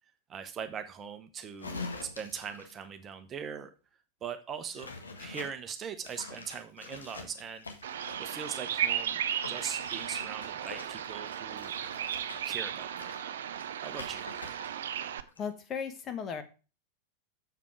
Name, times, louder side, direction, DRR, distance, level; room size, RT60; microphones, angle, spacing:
voice 1, 0.3-3.7 4.2-4.9 5.2-7.7 8.2-9.2 9.5-11.7 12.4-13.1 13.8-14.3, right 7 dB, 25° right, 8 dB, 0.9 m, -40 dB
sound 1, 1.6-2.8 4.7-5.5 6.0-8.5 9.4-14.9 15.1-15.4, left 3 dB, 75° left, 1.5 m, -45 dB
Bird vocalization bird call bird song, 7.8-15.2, right 9 dB, 60° right, 0.6 m, -35 dB
voice 2, 15.4-16.4, left 7 dB, 30° left, 8 dB, 1.3 m, -36 dB
7.4 x 6.8 x 4.6 m, 0.33 s
figure-of-eight pair, 90°, 0 cm